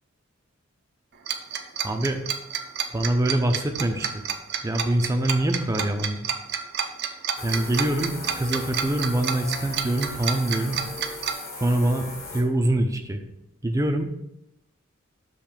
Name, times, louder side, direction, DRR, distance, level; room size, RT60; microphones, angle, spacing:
Tick-tock, 1.3-11.3, right 8 dB, 50° right, 0.6 m, -28 dB
voice 1, 1.8-2.2 2.9-4.2 4.6-6.3 7.4-10.8 11.6-13.2 13.6-14.1, right 1 dB, 15° right, 5 dB, 0.6 m, -24 dB
sound 1, 7.4-12.4, left 2 dB, 45° left, 1.6 m, -38 dB
6.7 x 3.2 x 5.9 m, 0.85 s
head